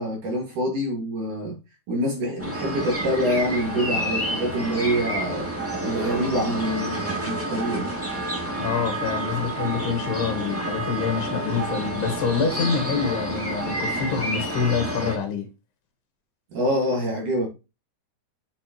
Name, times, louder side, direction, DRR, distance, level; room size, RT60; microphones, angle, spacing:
voice 1, 0.0-1.6 1.9-5.5 5.8-7.9 16.5-17.5, equal, 55° right, 3.3 m, -26 dB
sound 1, 2.4-15.2, right 1 dB, 5° right, 1.4 m, -29 dB
voice 2, 8.6-15.5, left 6 dB, 80° left, 3.6 m, -26 dB
8.5 x 6.8 x 3.0 m
omnidirectional pair, 4.6 m